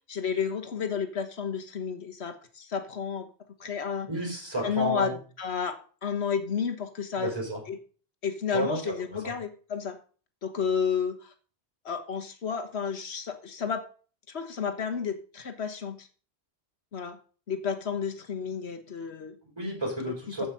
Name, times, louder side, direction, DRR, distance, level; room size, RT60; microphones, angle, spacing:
voice 1, 0.1-3.3 3.6-4.1 4.6-7.3 7.7-7.8 8.2-10.0 10.4-11.3 11.8-13.8 14.3-16.1 16.9-17.2 17.5-19.4 20.3-20.5, left 6 dB, 80° left, 6 dB, 1.6 m, -31 dB
voice 2, 4.1-5.2 7.2-7.6 8.5-9.3 19.6-20.5, right 1 dB, 25° right, -1 dB, 5.3 m, -32 dB
14.5 x 5.7 x 5.5 m, 0.40 s
omnidirectional pair, 1.1 m